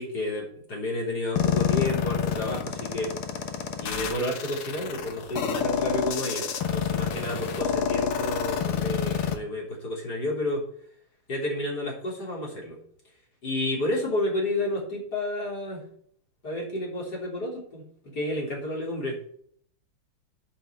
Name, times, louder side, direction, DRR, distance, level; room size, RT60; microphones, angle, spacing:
voice 1, 0.0-3.1 3.8-10.6 11.3-12.8 13.4-15.9 16.4-19.2, left 1 dB, 50° left, -2 dB, 4.2 m, -31 dB
sound 1, 1.4-9.4, left 8 dB, 90° left, 2.0 m, -28 dB
8.7 x 5.7 x 7.8 m, 0.62 s
omnidirectional pair, 2.3 m